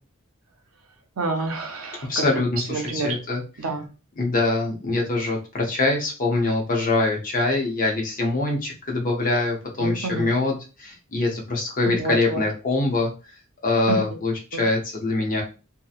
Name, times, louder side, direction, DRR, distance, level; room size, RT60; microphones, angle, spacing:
voice 1, 1.2-2.3 2.7-3.2 3.6-3.9 9.8-10.3 11.9-12.4 13.9-14.0 14.5-14.6, right 3 dB, 90° right, 4 dB, 0.6 m, -28 dB
voice 2, 2.1-3.4 4.2-13.1 13.6-15.4, left 2 dB, 40° left, 0 dB, 0.7 m, -24 dB
2.8 x 2.1 x 2.3 m, 0.33 s
head